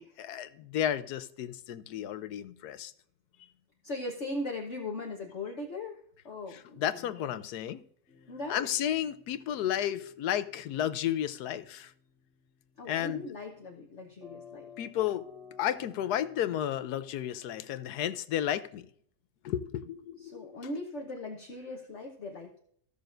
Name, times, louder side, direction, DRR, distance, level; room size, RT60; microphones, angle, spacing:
voice 1, 0.0-2.9 6.5-7.8 8.5-11.9 12.9-13.3 14.8-15.2 15.6-18.9 19.4-20.6, left 11 dB, 75° left, 1.2 m, -32 dB
voice 2, 3.8-6.0 6.2-7.3 8.3-8.7 12.8-14.7 20.2-22.6, left 2 dB, 45° left, 1.3 m, -39 dB
sound 1, 8.1-17.8, left 4 dB, ahead, 2.2 m, -55 dB
15.0 x 6.7 x 2.6 m
omnidirectional pair, 1.8 m